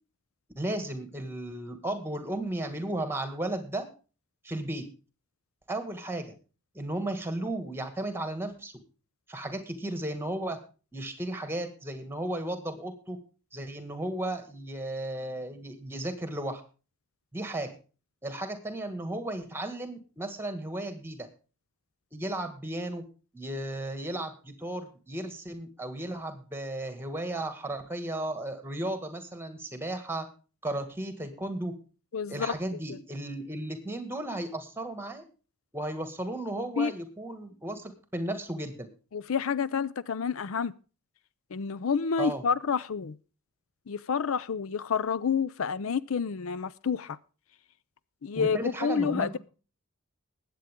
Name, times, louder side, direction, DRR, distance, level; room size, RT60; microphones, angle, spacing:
voice 1, 0.6-3.9 4.4-4.9 5.7-6.3 6.7-8.7 9.3-10.6 10.9-13.2 13.5-16.6 17.3-17.7 18.2-21.3 22.1-23.0 23.3-30.3 30.6-31.7 32.3-35.2 35.7-38.9 42.2-42.4 48.4-49.4, right 1 dB, 10° right, 1.9 m, -34 dB
voice 2, 32.1-32.5 32.9-33.0 36.8-36.9 39.1-40.7 41.5-43.2 43.9-47.2 48.2-49.4, left 6 dB, 65° left, 0.5 m, -29 dB
20.5 x 8.4 x 3.7 m
head